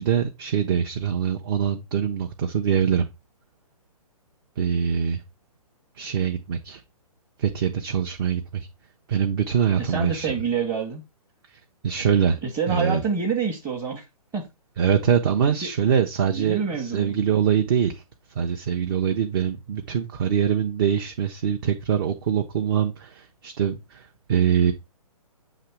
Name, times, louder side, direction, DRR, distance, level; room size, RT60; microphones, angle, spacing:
voice 1, 0.0-3.1 4.6-5.2 6.0-6.8 7.4-8.7 9.1-10.3 11.8-12.4 12.7-13.0 14.8-18.0 18.3-24.7, right 8 dB, 35° right, 0.7 m, -23 dB
voice 2, 9.7-11.0 12.4-14.0 14.3-14.4 15.5-15.7 16.3-17.1, right 5 dB, 15° right, 1.0 m, -27 dB
7.6 x 3.0 x 4.5 m
figure-of-eight pair, 130°, 19 cm